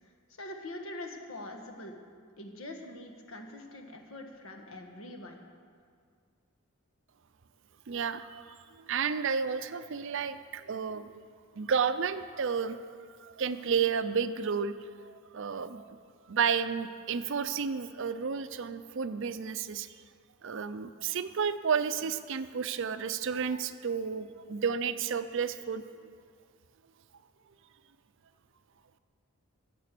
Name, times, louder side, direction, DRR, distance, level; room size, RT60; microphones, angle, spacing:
voice 1, 0.4-2.0 2.4-5.4, left 1 dB, 65° left, 3 dB, 1.5 m, -43 dB
voice 2, 7.9-8.6 8.8-11.2 11.6-12.8 13.2-16.0 16.3-19.9 20.4-25.8, right 6 dB, 55° right, 12 dB, 0.5 m, -31 dB
16.5 x 6.8 x 6.8 m, 2.1 s
head